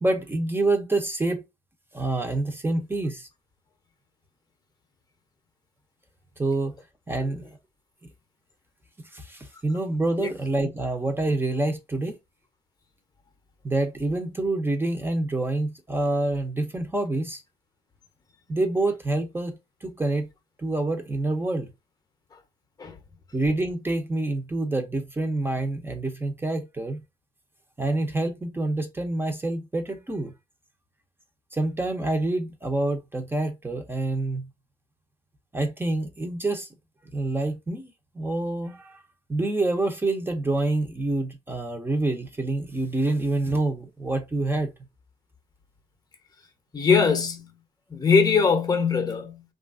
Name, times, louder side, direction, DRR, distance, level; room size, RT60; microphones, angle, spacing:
voice 1, 0.0-1.4 1.9-3.3 6.4-6.7 7.1-7.5 8.0-8.1 9.1-12.2 13.6-17.4 18.5-20.3 20.6-21.7 23.3-27.0 27.8-30.3 31.5-34.5 35.5-36.7 37.1-39.0 39.3-44.7, right 2 dB, 15° right, 0.6 m, -27 dB
voice 2, 46.7-47.5 47.9-49.4, left 5 dB, 20° left, 0.7 m, -21 dB
3.0 x 2.4 x 2.4 m
cardioid pair, 110°, 17 cm